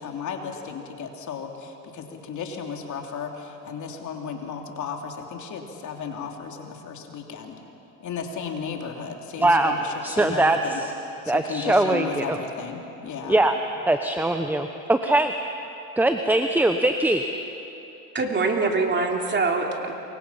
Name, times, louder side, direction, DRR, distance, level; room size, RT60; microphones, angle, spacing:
voice 1, 0.0-7.6 8.0-10.8 11.2-13.4, left 6 dB, 40° left, 2 dB, 3.3 m, -34 dB
voice 2, 9.4-9.8 10.0-10.6 11.3-12.2 13.3-13.5 13.9-15.3 16.0-17.2, right 2 dB, 5° right, 7 dB, 1.0 m, -21 dB
voice 3, 18.1-19.9, right 3 dB, 25° right, 1 dB, 3.4 m, -24 dB
28.0 x 24.0 x 5.8 m, 3.0 s
supercardioid pair, 95°, 43 cm